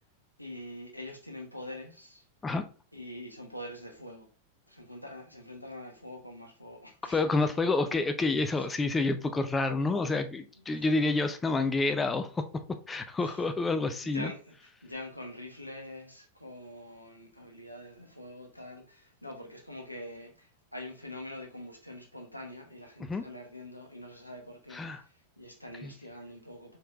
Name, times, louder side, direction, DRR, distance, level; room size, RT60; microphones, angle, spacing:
voice 1, 0.4-2.2 2.9-4.3 4.7-7.2 7.5-7.9 10.8-10.9 13.2-13.5 13.7-26.8, left 1 dB, 90° left, 0.9 m, -45 dB
voice 2, 7.0-14.3 23.1-23.2 24.7-25.0 25.8-25.9, left 3 dB, 15° left, 0.4 m, -29 dB
4.4 x 3.9 x 2.3 m
figure-of-eight pair, 90°, 0 cm